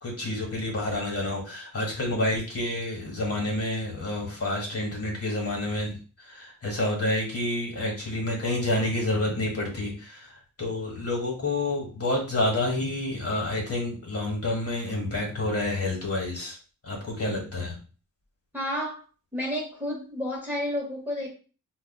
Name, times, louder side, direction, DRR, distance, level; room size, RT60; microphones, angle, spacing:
voice 1, 0.0-16.6 16.8-17.8, left 1 dB, 45° left, -1 dB, 1.4 m, -29 dB
voice 2, 18.5-19.0 19.3-21.3, left 1 dB, 5° right, -3 dB, 1.0 m, -31 dB
4.7 x 2.3 x 2.3 m, 0.36 s
wide cardioid pair, 100°, 34 cm